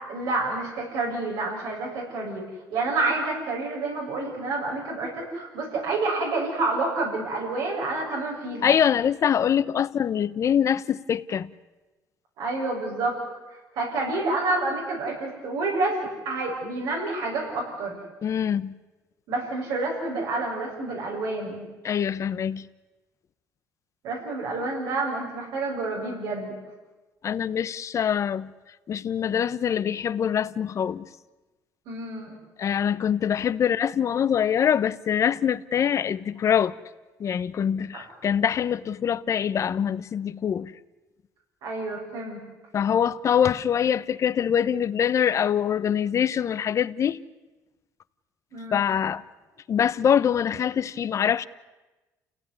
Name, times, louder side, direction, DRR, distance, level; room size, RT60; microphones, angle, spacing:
voice 1, 0.1-2.4 2.7-8.7 12.4-13.2 13.8-16.0 16.3-18.0 19.3-21.7 24.0-26.6 31.9-32.3 41.6-42.4 48.5-48.9, right 3 dB, 90° right, 7.0 m, -28 dB
voice 2, 8.6-11.5 18.2-18.8 21.8-22.7 27.2-28.5 28.9-31.0 32.6-36.8 37.2-40.7 42.7-47.2 48.7-49.2 49.7-51.5, left 8 dB, 45° left, 0.9 m, -24 dB
29.0 x 17.0 x 9.6 m
cardioid pair, 115°, 7 cm